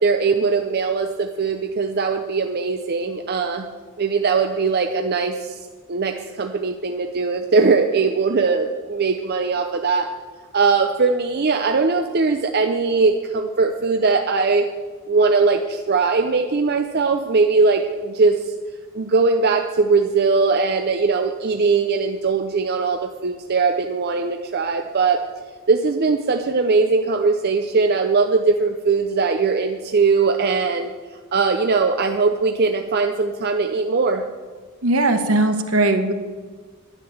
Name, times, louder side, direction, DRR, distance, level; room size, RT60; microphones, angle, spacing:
voice 1, 0.0-3.7 4.0-5.6 5.9-10.1 10.5-14.7 15.1-18.5 18.9-25.2 25.7-30.9 31.3-34.2, right 4 dB, 45° right, 5 dB, 0.6 m, -20 dB
voice 2, 34.8-36.1, right 2 dB, 65° right, 7 dB, 1.3 m, -19 dB
11.0 x 10.5 x 7.1 m, 1.5 s
head